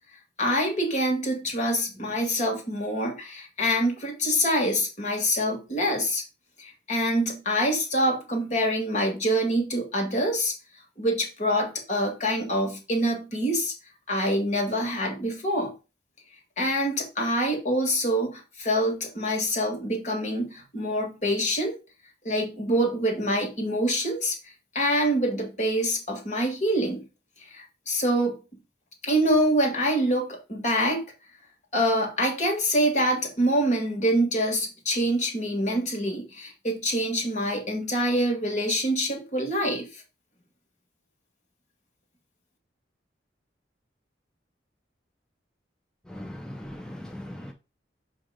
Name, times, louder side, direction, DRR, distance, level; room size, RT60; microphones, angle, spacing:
voice 1, 0.4-6.2 6.6-10.5 11.0-13.7 14.1-15.7 16.6-21.8 22.2-24.4 24.7-27.1 27.5-28.4 29.0-31.0 31.7-40.0, equal, 40° left, 2.1 m, -25 dB
voice 2, 46.1-47.5, left 1 dB, 5° left, 0.6 m, -39 dB
7.0 x 3.0 x 5.1 m
head